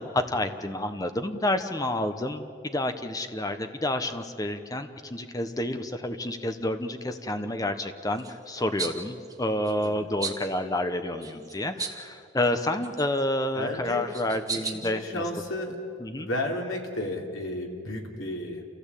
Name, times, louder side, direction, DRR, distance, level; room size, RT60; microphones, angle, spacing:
voice 1, 0.0-15.2 16.0-16.3, left 1 dB, 15° left, 8 dB, 1.0 m, -29 dB
sound 1, 8.2-8.3 8.8-9.0 9.2-9.9 10.2-10.5 11.2-12.1 12.4-13.2 13.8-14.7, right 5 dB, 15° right, 1.5 m, -35 dB
voice 2, 13.5-14.1 14.6-15.8 16.2-18.7, left 1 dB, 75° left, 0 dB, 3.3 m, -33 dB
28.0 x 15.5 x 8.4 m, 2.4 s
head